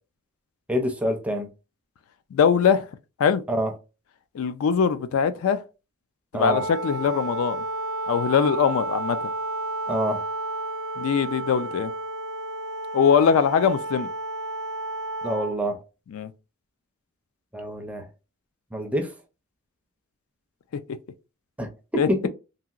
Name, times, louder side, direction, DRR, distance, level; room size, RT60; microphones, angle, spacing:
voice 1, 0.7-1.5 3.5-3.7 6.3-6.7 9.9-10.2 15.2-15.8 17.5-18.1 18.7-19.1 21.6-22.3, equal, 5° right, 0.4 m, -27 dB
voice 2, 2.3-2.9 3.2-3.4 4.3-5.6 6.3-7.6 8.1-9.3 11.0-11.9 12.9-14.1 16.1-16.3 22.0-22.1, left 6 dB, 70° left, 0.3 m, -21 dB
Wind instrument woodwind instrument, 6.4-15.6, right 2 dB, 85° right, 0.6 m, -31 dB
2.8 x 2.8 x 2.4 m
head